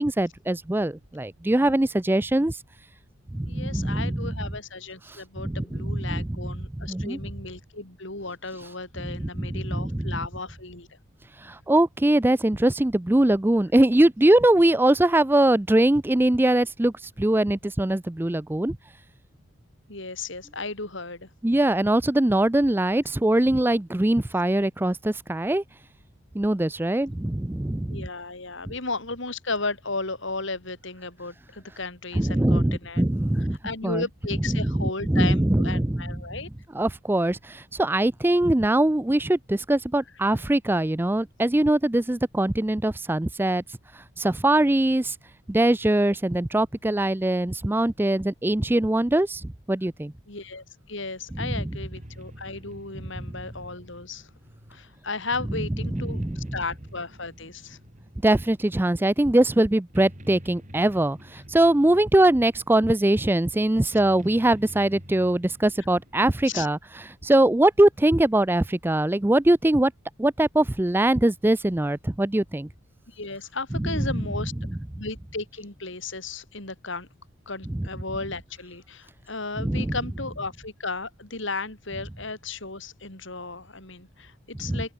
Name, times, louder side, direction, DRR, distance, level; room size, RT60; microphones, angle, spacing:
voice 1, 0.0-2.6 3.3-4.3 5.1-6.3 6.8-7.2 9.0-10.2 11.4-18.8 21.4-25.6 26.3-28.1 32.1-33.6 33.8-34.0 34.5-36.2 36.7-43.6 44.2-45.2 45.5-50.1 51.3-51.5 53.2-53.3 55.9-56.6 58.2-66.8 67.2-69.9 70.2-72.7 73.8-74.2 77.7-77.9 79.6-80.0 84.6-84.8, right 1 dB, 10° right, 0.4 m, -22 dB
voice 2, 3.5-10.9 19.9-21.3 27.9-33.0 33.6-36.5 50.3-54.3 54.7-57.8 66.5-66.7 73.1-74.5 75.0-77.1 77.5-84.9, left 3 dB, 60° left, 3.4 m, -34 dB
sound 1, 51.0-66.6, equal, 35° right, 8.0 m, -49 dB
open air
head